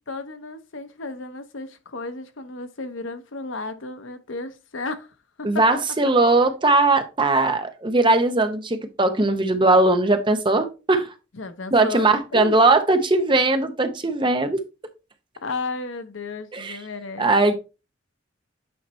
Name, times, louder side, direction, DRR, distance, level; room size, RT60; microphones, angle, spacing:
voice 1, 0.1-5.7 11.3-12.6 15.4-17.3, left 3 dB, 80° left, 0.9 m, -33 dB
voice 2, 5.4-11.1 11.7-14.6 16.5-16.8 17.2-17.6, right 2 dB, 25° right, 0.7 m, -19 dB
8.6 x 2.9 x 4.3 m
head